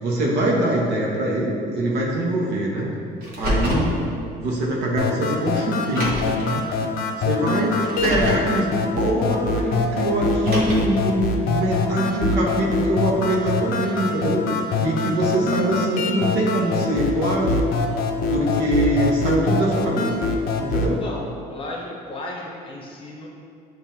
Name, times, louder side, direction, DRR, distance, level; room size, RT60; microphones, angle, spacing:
voice 1, 0.0-2.9 3.3-3.9 4.4-6.7 7.2-8.7 9.0-17.7 18.3-20.1 20.6-21.0, right 1 dB, 90° right, -3 dB, 0.9 m, -23 dB
Car, 3.2-3.9 5.0-5.1 5.8-6.4 7.8-8.4 10.3-11.0, equal, 60° right, 1.1 m, -26 dB
sound 1, 5.0-21.0, left 4 dB, 65° left, 0.5 m, -24 dB
voice 2, 21.5-23.3, left 2 dB, 30° left, -2 dB, 0.8 m, -34 dB
7.3 x 2.6 x 2.7 m, 2.4 s
cardioid pair, 110°, 17 cm